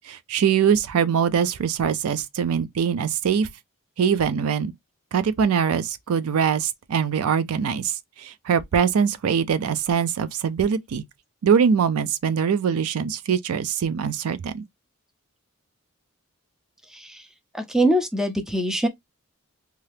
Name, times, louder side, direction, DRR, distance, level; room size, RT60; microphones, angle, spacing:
voice 1, 0.1-3.5 4.0-4.7 5.1-11.0 11.4-14.6, right 7 dB, 85° right, 0.4 m, -23 dB
voice 2, 16.9-17.3 17.5-18.9, right 1 dB, ahead, 0.4 m, -23 dB
2.7 x 2.4 x 3.3 m
head